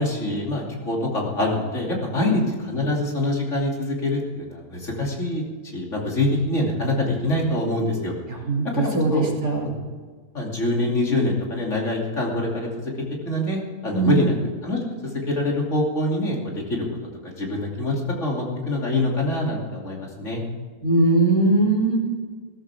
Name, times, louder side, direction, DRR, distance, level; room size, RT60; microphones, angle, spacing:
voice 1, 0.0-5.4 5.7-8.1 8.7-9.3 10.3-12.9 13.2-14.3 14.6-16.8 17.2-17.9 18.2-20.4, left 2 dB, 50° left, -2 dB, 3.2 m, -25 dB
voice 2, 8.3-9.7 13.9-14.2 20.8-22.0, right 2 dB, 70° right, -1 dB, 3.2 m, -20 dB
16.5 x 14.5 x 3.6 m, 1.5 s
omnidirectional pair, 1.6 m